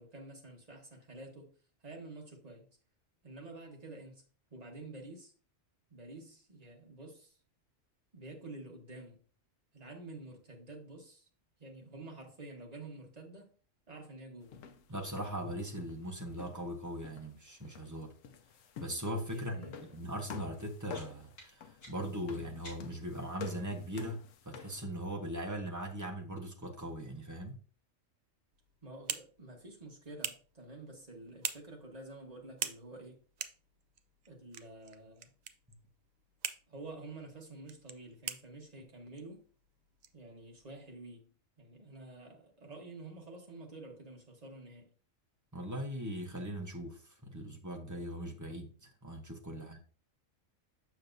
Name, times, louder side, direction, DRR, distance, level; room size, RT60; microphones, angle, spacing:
voice 1, 0.0-1.5 1.8-2.7 3.2-4.2 4.5-5.3 5.9-7.4 8.1-9.2 9.7-11.3 11.6-13.5 13.9-14.6 19.3-20.0 28.8-33.2 34.3-35.3 36.7-39.4 40.1-41.3 41.6-44.9 49.6-49.8, right 2 dB, 30° right, 1.4 m, -49 dB
sound 1, 14.5-16.8 17.0-24.8, left 6 dB, 80° left, 1.0 m, -50 dB
voice 2, 14.9-18.1 18.8-24.2 24.5-27.6 45.5-49.8, equal, 15° right, 0.8 m, -40 dB
sound 2, 20.9-23.2, equal, 60° left, 3.3 m, -56 dB
sound 3, 28.5-40.9, right 7 dB, 75° right, 0.4 m, -46 dB
7.0 x 6.2 x 2.6 m
omnidirectional pair, 1.3 m